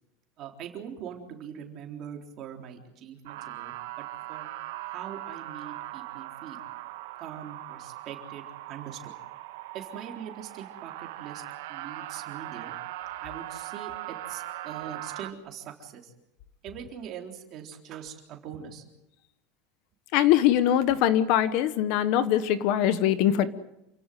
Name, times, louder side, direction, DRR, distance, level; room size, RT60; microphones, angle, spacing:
voice 1, 0.4-4.5 4.8-6.6 7.2-9.1 9.7-11.4 11.7-12.7 13.2-16.1 16.6-18.9, right 8 dB, 30° right, 2 dB, 3.8 m, -42 dB
sound 1, 3.3-15.3, right 15 dB, 70° right, 1.8 m, -40 dB
voice 2, 20.1-23.5, left 11 dB, 45° left, 13 dB, 1.3 m, -22 dB
28.5 x 16.5 x 9.3 m, 0.85 s
supercardioid pair, 180°, 0 cm